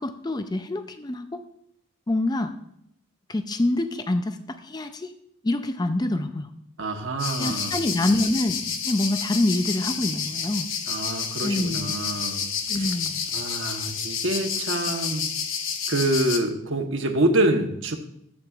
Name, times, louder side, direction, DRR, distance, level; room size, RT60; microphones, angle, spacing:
voice 1, 0.0-1.5 2.1-2.5 3.3-5.1 5.4-6.5 7.4-10.7 11.4-11.9 12.7-13.2, left 1 dB, 20° left, 8 dB, 0.4 m, -26 dB
voice 2, 6.8-7.7 10.9-12.5 13.3-15.3 15.9-18.0, right 1 dB, 65° right, 4 dB, 1.1 m, -26 dB
sound 1, 7.2-16.4, left 6 dB, 70° left, 0.9 m, -30 dB
14.0 x 8.3 x 2.4 m, 0.75 s
head